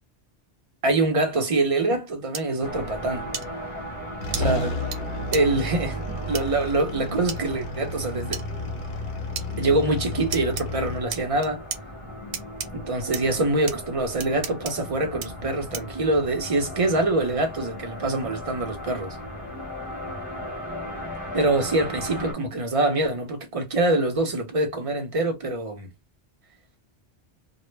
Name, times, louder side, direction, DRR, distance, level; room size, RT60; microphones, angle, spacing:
voice 1, 0.8-3.3 4.4-4.7 5.3-8.4 9.6-11.6 12.7-19.2 21.3-25.9, right 2 dB, 35° right, 0.6 m, -25 dB
sound 1, 2.3-2.4 3.3-3.5 4.3-4.4 4.9-5.0 5.3-5.4 6.3-6.4 7.3-7.4 8.3-8.4 9.4-9.5 10.3-10.6 11.1-11.8 12.3-12.7 13.1-13.2 13.7-13.8 14.2-14.7 15.2-15.3 15.7-16.0, right 7 dB, 70° right, 0.9 m, -32 dB
sound 2, 2.6-22.3, left 1 dB, 30° left, 1.0 m, -37 dB
sound 3, 3.8-3.9 4.2-11.0, left 2 dB, 50° left, 0.7 m, -32 dB
2.2 x 2.0 x 3.2 m
omnidirectional pair, 1.2 m